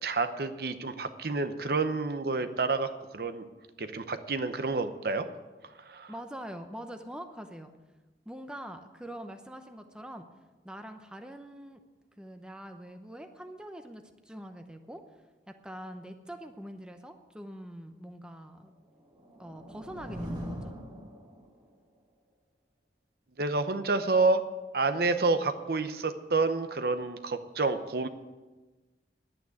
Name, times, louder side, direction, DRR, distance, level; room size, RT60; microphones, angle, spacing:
voice 1, 0.0-3.4 3.8-5.3 5.9-6.1 23.4-24.4 24.7-28.1, right 3 dB, 60° right, 10 dB, 0.8 m, -29 dB
voice 2, 6.1-7.7 8.3-10.2 10.6-11.8 12.2-15.0 15.5-18.7 19.4-20.8, equal, 5° right, 6 dB, 0.8 m, -44 dB
sound 1, 18.9-21.8, equal, 25° right, 2.1 m, -41 dB
10.5 x 9.0 x 9.6 m, 1.2 s
head